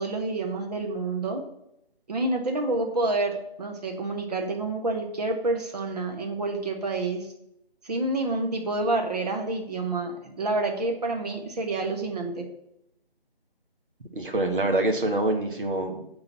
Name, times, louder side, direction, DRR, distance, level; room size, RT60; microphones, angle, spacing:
voice 1, 0.0-1.4 2.1-7.3 7.8-12.5, right 2 dB, 40° right, 3 dB, 1.2 m, -28 dB
voice 2, 14.1-16.1, right 2 dB, 60° right, 4 dB, 1.4 m, -25 dB
6.6 x 3.9 x 5.9 m, 0.81 s
figure-of-eight pair, 155°, 30 cm